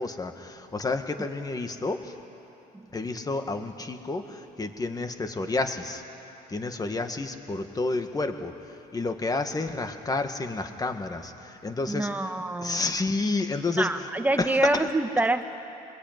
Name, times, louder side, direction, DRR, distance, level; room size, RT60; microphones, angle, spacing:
voice 1, 0.0-2.1 2.9-6.0 6.5-12.1 12.6-14.1 14.4-14.9, left 3 dB, 20° left, 6 dB, 1.8 m, -30 dB
voice 2, 11.9-12.9 13.8-15.5, right 2 dB, 10° right, 7 dB, 1.3 m, -26 dB
24.0 x 21.0 x 9.4 m, 2.9 s
cardioid pair, 110°, 17 cm